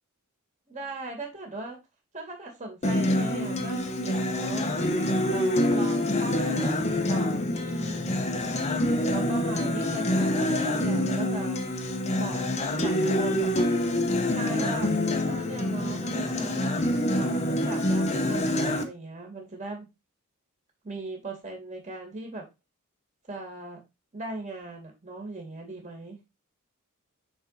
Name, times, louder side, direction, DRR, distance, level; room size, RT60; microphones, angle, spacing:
voice 1, 0.7-1.8 2.1-4.7 5.3-8.1 8.7-11.6 12.1-12.5 12.8-13.5 14.3-14.9 15.3-16.9 17.2-19.9 20.8-22.4 23.3-23.8 24.1-26.2, right 2 dB, 30° right, 2 dB, 2.2 m, -39 dB
Acoustic guitar, 2.8-18.8, left 1 dB, 30° left, 1.0 m, -26 dB
6.2 x 4.6 x 4.0 m, 0.24 s
head